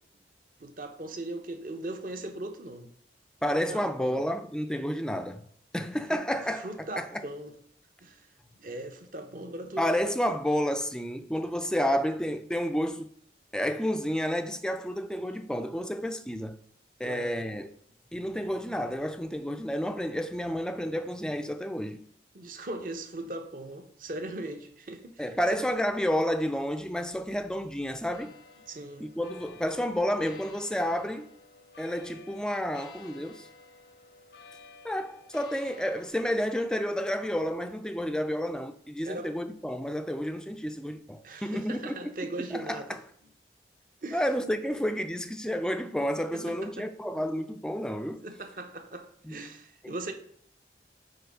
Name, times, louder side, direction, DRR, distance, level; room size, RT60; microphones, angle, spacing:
voice 1, 0.6-2.9 3.5-4.2 6.1-6.2 6.6-7.5 8.0-8.3 8.6-9.8 17.0-17.3 22.3-25.2 25.5-25.6 28.7-29.1 39.0-39.3 41.2-43.0 44.0-44.2 44.6-44.8 46.3-46.9 48.2-50.1, right 2 dB, 50° right, 0.8 m, -39 dB
voice 2, 3.4-5.4 5.7-6.7 7.0-7.2 9.8-13.1 13.5-16.6 17.0-17.7 18.1-22.0 25.2-28.3 29.0-31.3 31.8-33.5 34.8-43.0 44.1-48.2 49.2-49.4 49.8-49.9, equal, 5° left, 0.4 m, -30 dB
sound 1, 28.1-36.1, left 4 dB, 75° left, 0.7 m, -52 dB
7.9 x 3.1 x 5.2 m
head